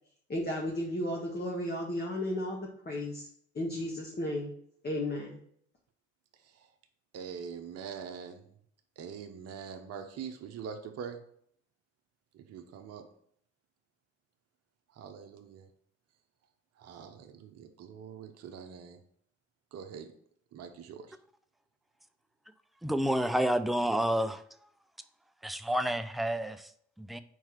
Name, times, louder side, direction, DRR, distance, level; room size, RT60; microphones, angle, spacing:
voice 1, 0.3-3.3 3.5-4.5 4.8-5.4, left 1 dB, 30° left, 1.5 m, -34 dB
voice 2, 7.1-8.5 9.0-11.2 12.3-13.0 14.9-15.7 16.8-19.0 19.7-20.1 20.5-21.2, right 7 dB, 45° right, 0.9 m, -44 dB
voice 3, 22.8-24.7 25.4-27.2, equal, ahead, 0.4 m, -30 dB
4.6 x 4.5 x 5.9 m
hypercardioid pair, 55°, 34 cm